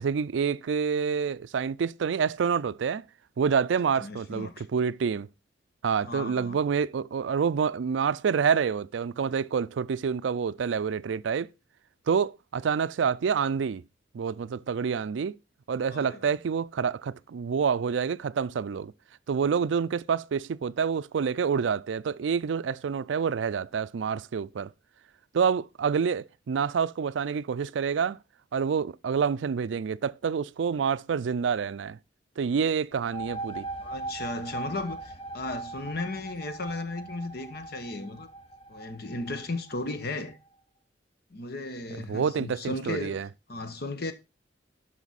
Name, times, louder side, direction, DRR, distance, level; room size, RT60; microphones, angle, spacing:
voice 1, 0.0-3.0 3.4-5.3 5.8-11.5 12.1-13.8 14.1-15.4 15.7-18.9 19.3-24.7 25.3-28.2 28.5-32.0 32.4-33.6 42.1-43.3, right 6 dB, 80° right, 0.4 m, -27 dB
voice 2, 4.0-4.7 6.0-6.6 15.9-16.4 33.8-38.3 38.7-40.4 41.3-43.2 43.5-44.1, left 2 dB, 60° left, 1.1 m, -35 dB
sound 1, 32.9-40.3, right 3 dB, 35° left, 1.0 m, -40 dB
11.0 x 6.2 x 4.1 m
head